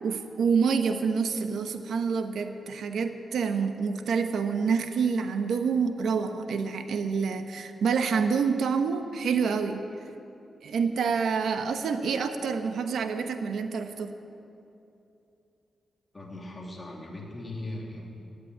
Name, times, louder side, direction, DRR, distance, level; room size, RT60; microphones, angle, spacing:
voice 1, 0.0-9.8 10.6-14.1, right 5 dB, 85° right, 7 dB, 1.0 m, -27 dB
voice 2, 16.1-18.0, left 1 dB, 20° left, -2 dB, 3.1 m, -39 dB
17.0 x 8.4 x 9.6 m, 2.8 s
wide cardioid pair, 130°, 0 cm